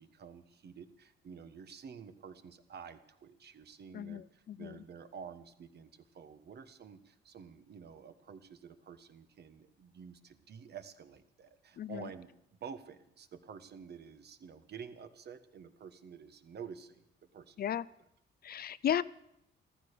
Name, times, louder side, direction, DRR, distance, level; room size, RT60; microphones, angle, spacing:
voice 1, 0.0-12.3 12.6-17.0 17.3-17.8, right 6 dB, 55° right, 10 dB, 1.4 m, -50 dB
voice 2, 3.9-4.8 11.8-12.1 17.6-17.9 18.4-19.0, left 10 dB, 50° left, 18 dB, 0.5 m, -35 dB
14.5 x 13.5 x 6.8 m, 0.79 s
cardioid pair, 90°, 20 cm